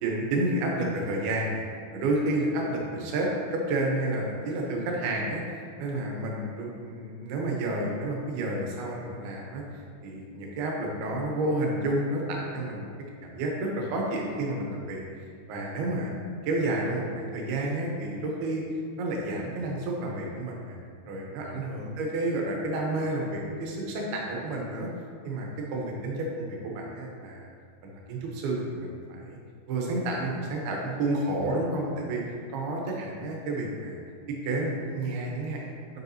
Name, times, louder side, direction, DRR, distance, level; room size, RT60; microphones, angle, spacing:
voice 1, 0.0-1.6 1.9-5.4 5.8-12.9 13.2-15.0 15.5-16.1 16.4-18.6 19.0-20.8 21.1-24.9 25.2-27.5 27.8-29.4 29.7-32.2 32.5-34.0 34.3-36.0, right 2 dB, 75° right, -1 dB, 2.8 m, -30 dB
9.1 x 6.4 x 2.8 m, 2.1 s
omnidirectional pair, 4.9 m